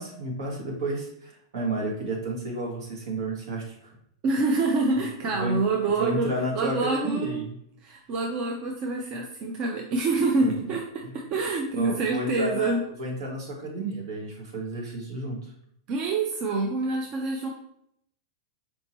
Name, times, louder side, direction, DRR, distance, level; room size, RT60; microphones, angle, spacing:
voice 1, 0.0-3.9 5.0-5.6 6.0-7.6 10.4-10.5 11.0-11.1 11.8-15.5, right 1 dB, 70° right, -1 dB, 1.4 m, -32 dB
voice 2, 4.2-7.4 7.8-10.8 11.1-12.8 15.9-17.5, right 3 dB, 40° right, 1 dB, 0.5 m, -26 dB
4.4 x 2.8 x 2.9 m, 0.71 s
hypercardioid pair, 130°, 2 cm